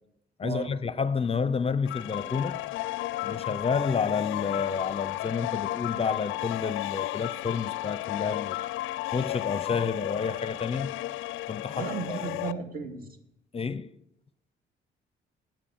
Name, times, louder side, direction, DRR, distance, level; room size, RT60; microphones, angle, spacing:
voice 1, 0.4-2.7 3.2-8.6 9.1-11.0 11.5-12.6 13.5-13.9, left 5 dB, 30° left, 0.6 m, -30 dB
sound 1, 1.8-12.5, left 16 dB, 85° left, 0.4 m, -33 dB
voice 2, 11.8-13.0, right 4 dB, 50° right, 2.4 m, -34 dB
13.0 x 9.2 x 7.0 m
cardioid pair, 90°, 20 cm